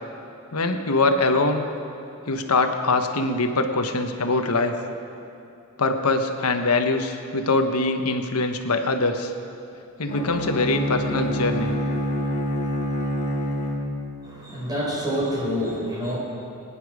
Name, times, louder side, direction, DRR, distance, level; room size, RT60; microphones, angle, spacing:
voice 1, 0.5-1.6 2.3-4.8 5.8-9.3 10.0-11.7, left 3 dB, 90° left, 6 dB, 1.2 m, -23 dB
Bowed string instrument, 10.1-14.3, equal, 35° left, 1.7 m, -27 dB
voice 2, 14.2-16.2, equal, 20° right, -5 dB, 4.8 m, -27 dB
23.5 x 10.0 x 5.0 m, 2.7 s
head